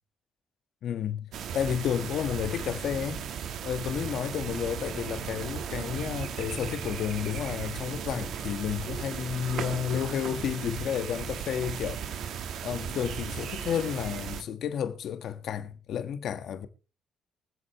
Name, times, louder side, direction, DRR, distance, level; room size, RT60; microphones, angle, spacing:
voice 1, 0.8-3.2 3.6-12.0 12.6-16.7, left 9 dB, 70° left, 1.3 m, -31 dB
sound 1, 1.3-14.4, right 7 dB, 75° right, 1.3 m, -36 dB
24.0 x 8.1 x 3.0 m
cardioid pair, 90°, 0 cm